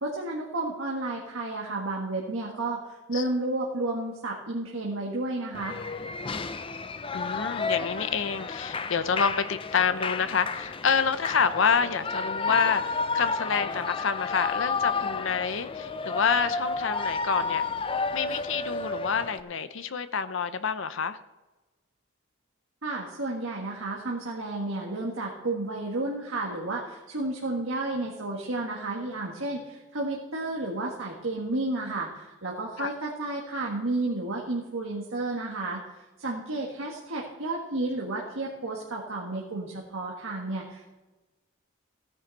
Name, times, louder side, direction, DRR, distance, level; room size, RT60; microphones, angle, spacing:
voice 1, 0.0-5.8 22.8-35.8 36.2-40.9, right 2 dB, 70° right, -2 dB, 1.7 m, -32 dB
Shout / Cheering, 5.5-19.4, left 4 dB, 25° left, 0.4 m, -31 dB
voice 2, 7.1-17.6 18.1-21.2 32.8-32.9, left 6 dB, 60° left, 12 dB, 0.7 m, -28 dB
16.5 x 9.9 x 4.1 m, 1.1 s
head